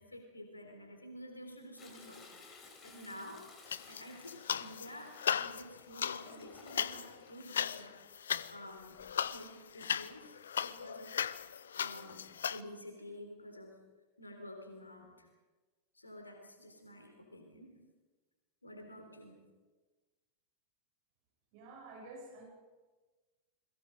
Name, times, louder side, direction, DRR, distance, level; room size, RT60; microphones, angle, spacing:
voice 1, 0.0-3.5 3.9-13.8 14.2-15.3 15.9-17.8 18.6-19.4, left 1 dB, 80° left, 4 dB, 3.7 m, -51 dB
Toilet flush, 1.8-7.3 8.8-9.3 9.7-9.8, left 4 dB, 25° left, 5.3 m, -57 dB
sound 1, 3.7-4.9 5.1-12.6, left 8 dB, 65° left, 0.7 m, -37 dB
voice 2, 21.5-22.5, right 2 dB, 45° right, 0 dB, 7.4 m, -50 dB
29.5 x 22.0 x 5.3 m, 1.3 s
figure-of-eight pair, 90°, 0 cm